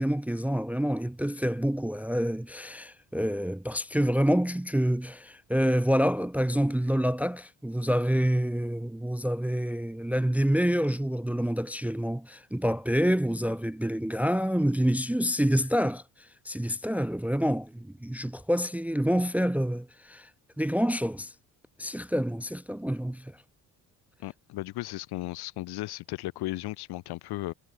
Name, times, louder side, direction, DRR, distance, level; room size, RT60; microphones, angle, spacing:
voice 1, 0.0-16.0 16.5-20.3 20.6-21.3 21.8-23.3, equal, 5° right, 0.5 m, -27 dB
voice 2, 24.2-27.5, left 18 dB, 80° left, 1.3 m, -35 dB
supercardioid pair, 80°, 38 cm